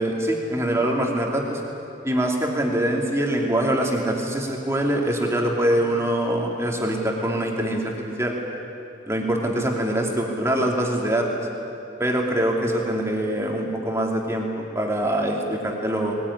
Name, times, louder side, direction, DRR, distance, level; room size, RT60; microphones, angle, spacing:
voice 1, 0.0-1.6 2.0-8.3 9.1-11.3 12.0-16.2, right 1 dB, 15° right, 0 dB, 2.7 m, -24 dB
21.0 x 19.5 x 9.9 m, 2.8 s
head